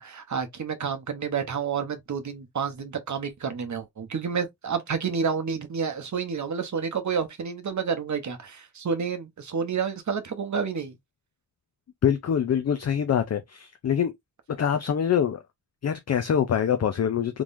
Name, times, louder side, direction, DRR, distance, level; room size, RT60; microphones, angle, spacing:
voice 1, 0.0-11.0, right 6 dB, 45° right, 0.8 m, -29 dB
voice 2, 12.0-14.1 14.6-15.4 15.8-17.4, left 8 dB, 40° left, 0.4 m, -24 dB
3.7 x 3.1 x 2.5 m
wide cardioid pair, 160°, 41 cm